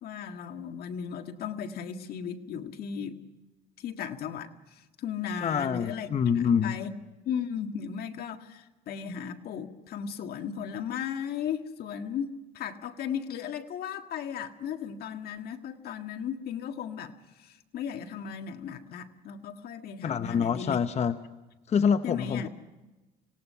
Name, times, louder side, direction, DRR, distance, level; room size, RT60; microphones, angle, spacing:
voice 1, 0.0-3.2 3.8-6.9 7.3-17.1 17.4-20.8 22.0-22.5, left 8 dB, 65° left, 5 dB, 1.8 m, -36 dB
voice 2, 5.4-6.7 20.0-21.2 21.7-22.5, left 7 dB, 40° left, 10 dB, 0.8 m, -26 dB
26.5 x 18.0 x 5.6 m, 1.1 s
cardioid pair, 110°, 17 cm